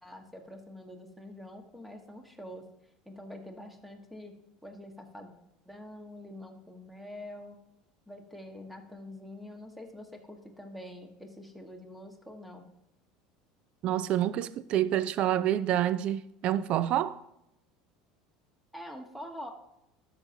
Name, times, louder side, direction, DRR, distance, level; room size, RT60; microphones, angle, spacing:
voice 1, 0.0-2.7 3.0-5.3 5.6-7.6 8.1-12.7 18.7-19.5, left 1 dB, ahead, 1.4 m, -45 dB
voice 2, 13.8-17.2, right 12 dB, 50° right, 0.4 m, -28 dB
13.0 x 5.8 x 2.8 m
hypercardioid pair, 80°, 2 cm